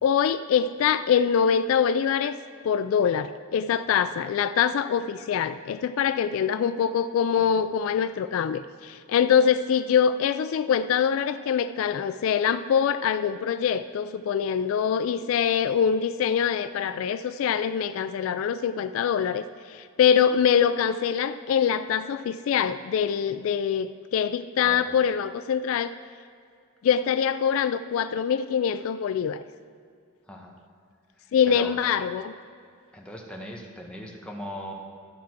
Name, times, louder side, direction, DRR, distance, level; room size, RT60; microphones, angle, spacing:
voice 1, 0.0-2.4 2.6-25.9 26.8-29.4 31.3-32.3, left 7 dB, 70° left, 12 dB, 0.3 m, -24 dB
voice 2, 32.9-34.7, equal, 5° left, -1 dB, 1.1 m, -39 dB
12.5 x 4.7 x 5.9 m, 2.3 s
head